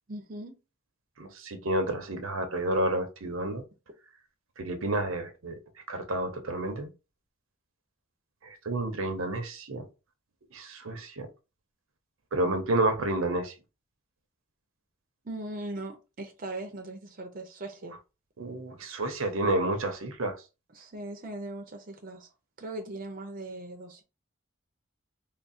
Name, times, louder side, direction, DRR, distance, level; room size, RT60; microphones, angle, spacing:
voice 1, 0.1-0.6 15.2-18.0 20.7-22.3 22.6-24.0, right 2 dB, 40° right, 0.6 m, -39 dB
voice 2, 1.2-3.6 4.6-5.6 5.9-6.9 8.4-9.8 10.5-11.3 12.3-13.5 18.4-20.3, right 2 dB, 80° right, 0.7 m, -30 dB
3.6 x 2.1 x 4.1 m
head